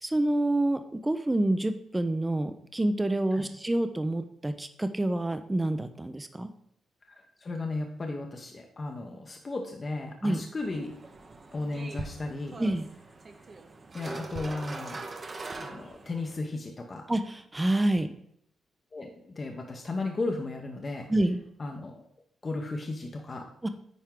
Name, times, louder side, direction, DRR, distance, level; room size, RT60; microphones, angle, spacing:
voice 1, 0.0-6.5 10.2-10.4 12.6-12.9 17.1-18.1 21.1-21.4 23.6-23.7, right 1 dB, 15° right, 9 dB, 0.5 m, -27 dB
voice 2, 7.1-10.9 11.5-12.6 13.9-15.0 15.5-17.0 18.9-21.1 21.6-22.0 22.4-23.5, left 2 dB, 35° left, 2 dB, 0.8 m, -35 dB
sound 1, 10.6-16.4, right 3 dB, 40° right, 0.8 m, -42 dB
9.1 x 4.5 x 3.7 m, 0.71 s
cardioid pair, 80°, 0 cm